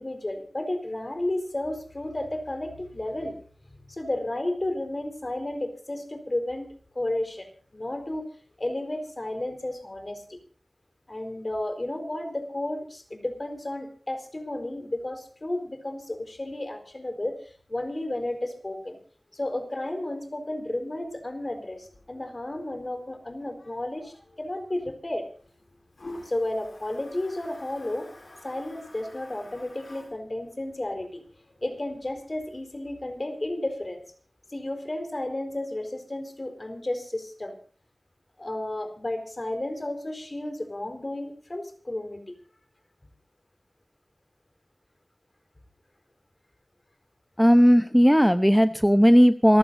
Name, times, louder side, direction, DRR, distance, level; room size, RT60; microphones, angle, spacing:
voice 1, 0.0-3.3 3.9-7.5 7.7-8.3 8.6-10.4 11.1-17.4 17.7-19.0 19.3-25.3 26.2-28.1 28.4-31.2 31.6-34.0 34.5-37.5 38.4-42.2, left 1 dB, 40° left, 7 dB, 4.4 m, -32 dB
Toilet flush, 21.0-32.6, left 1 dB, 65° left, 7.2 m, -50 dB
voice 2, 47.4-49.6, equal, ahead, 11 dB, 0.8 m, -17 dB
27.5 x 15.0 x 2.7 m, 0.43 s
wide cardioid pair, 70°, 0 cm